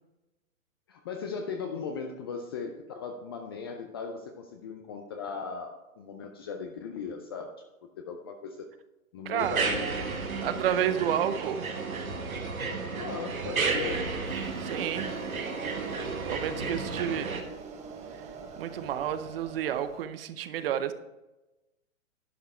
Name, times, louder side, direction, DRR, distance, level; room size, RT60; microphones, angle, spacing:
voice 1, 0.9-7.5 8.0-8.7 9.1-10.7 12.7-14.1, left 5 dB, 20° left, 4 dB, 0.4 m, -38 dB
voice 2, 9.3-9.7 10.4-11.7 14.6-15.1 16.2-17.4 18.6-20.9, right 10 dB, 45° right, 12 dB, 0.7 m, -30 dB
sound 1, 9.4-17.4, right 4 dB, 85° right, 1.6 m, -32 dB
sound 2, 14.3-20.0, right 4 dB, 15° right, 0.9 m, -44 dB
11.0 x 5.5 x 4.6 m, 1.0 s
hypercardioid pair, 125°, 41 cm